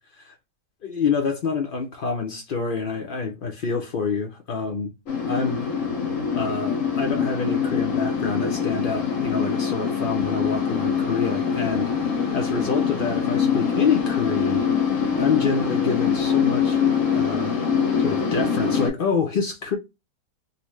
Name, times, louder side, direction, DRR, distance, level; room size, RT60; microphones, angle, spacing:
voice 1, 0.8-4.9 5.3-5.6 6.3-14.6 15.1-17.6 18.0-19.8, left 5 dB, 90° left, 0.4 m, -27 dB
sound 1, 5.1-18.9, left 6 dB, 60° left, 1.1 m, -24 dB
4.0 x 2.0 x 3.0 m
omnidirectional pair, 1.8 m